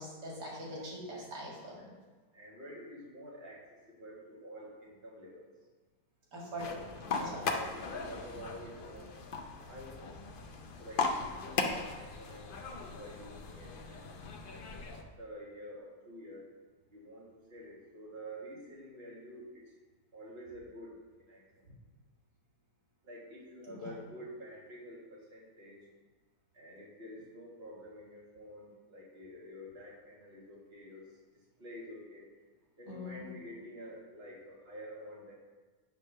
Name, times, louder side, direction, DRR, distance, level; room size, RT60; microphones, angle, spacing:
voice 1, 0.0-1.9 6.3-6.9 7.2-7.4 23.7-23.9 32.9-33.2, equal, 80° right, -4 dB, 2.6 m, -42 dB
voice 2, 0.7-1.4 1.7-1.9 2.3-3.6 3.9-5.4 7.2-9.2 9.7-10.2 10.8-14.2 14.4-16.4 16.9-17.2 17.5-19.5 20.1-20.9 21.3-21.4 23.0-25.8 26.5-31.0 31.6-32.3 32.8-35.3, equal, 35° right, -5 dB, 1.9 m, -49 dB
sound 1, 6.6-15.0, left 4 dB, 60° left, 0.5 m, -38 dB
9.4 x 3.5 x 6.5 m, 1.3 s
omnidirectional pair, 1.8 m